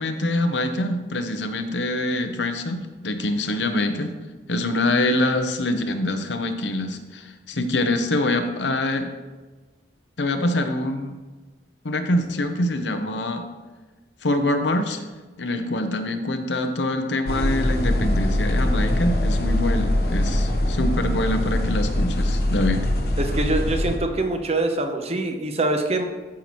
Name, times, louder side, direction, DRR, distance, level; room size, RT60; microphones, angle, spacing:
voice 1, 0.0-4.1 4.5-9.1 10.2-11.2 11.8-13.5 14.2-15.0 15.4-22.9, left 1 dB, 85° left, 7 dB, 0.9 m, -25 dB
sound 1, 17.3-24.0, left 1 dB, 60° left, 0.9 m, -22 dB
voice 2, 23.2-26.0, right 2 dB, 35° right, 5 dB, 0.8 m, -24 dB
13.5 x 5.9 x 3.1 m, 1.3 s
head